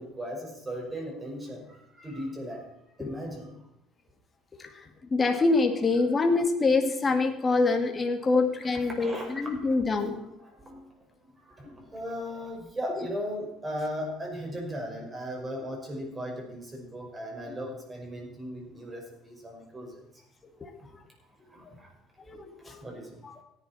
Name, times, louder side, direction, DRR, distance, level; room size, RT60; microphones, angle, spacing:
voice 1, 0.0-2.7 3.0-3.5 4.7-4.8 8.7-10.9 11.4-20.2 21.2-21.9 22.6-23.2, equal, 20° right, 0 dB, 5.4 m, -38 dB
voice 2, 5.1-10.2 20.6-20.7 22.3-22.8 23.2-23.4, left 3 dB, 25° left, 4 dB, 2.2 m, -25 dB
17.0 x 11.0 x 4.3 m, 0.83 s
cardioid pair, 120°, 0 cm